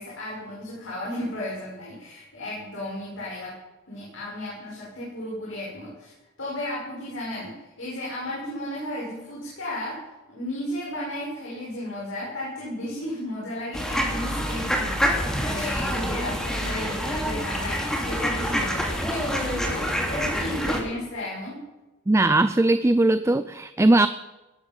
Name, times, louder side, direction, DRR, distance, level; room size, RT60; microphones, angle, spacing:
voice 1, 0.0-3.5 3.9-6.1 6.4-10.0 10.3-21.6, left 1 dB, 80° left, -6 dB, 6.5 m, -34 dB
sound 1, 13.7-20.8, equal, 5° left, 2.9 m, -27 dB
voice 2, 22.1-24.1, right 2 dB, 15° right, 12 dB, 0.4 m, -19 dB
18.5 x 12.0 x 5.6 m, 1.1 s
head